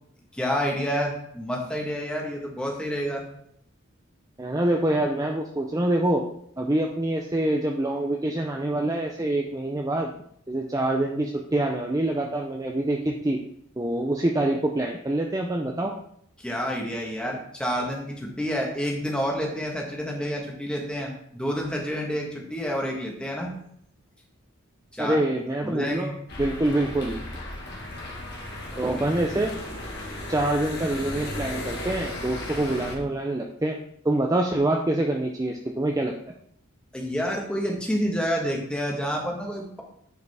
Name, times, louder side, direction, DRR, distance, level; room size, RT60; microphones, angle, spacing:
voice 1, 0.3-3.2 16.4-23.5 24.9-25.2 25.6-26.1 28.7-28.9 36.9-39.8, equal, 5° left, -1 dB, 1.3 m, -29 dB
voice 2, 4.4-6.2 6.6-10.1 10.5-13.4 13.8-15.9 25.0-26.1 26.4-27.2 28.8-29.5 30.3-33.8 34.0-36.1, right 1 dB, 15° right, 2 dB, 0.5 m, -25 dB
sound 1, 26.3-33.0, left 1 dB, 50° left, 1.7 m, -35 dB
9.5 x 4.9 x 3.5 m, 0.69 s
head